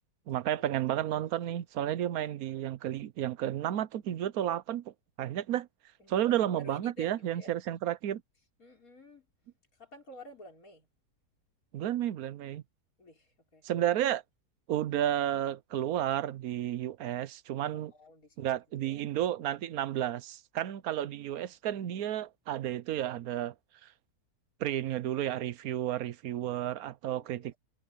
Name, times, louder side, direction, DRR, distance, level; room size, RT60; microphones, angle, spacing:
voice 1, 0.3-5.7 6.1-8.2 11.7-12.6 13.6-14.2 14.7-17.9 18.4-23.5 24.6-27.5, right 12 dB, 70° right, 1.1 m, -32 dB
voice 2, 6.0-7.6 8.6-9.3 9.7-10.9 13.0-13.7 17.7-19.1 27.0-27.6, equal, 55° left, 5.9 m, -51 dB
omnidirectional pair, 1.7 m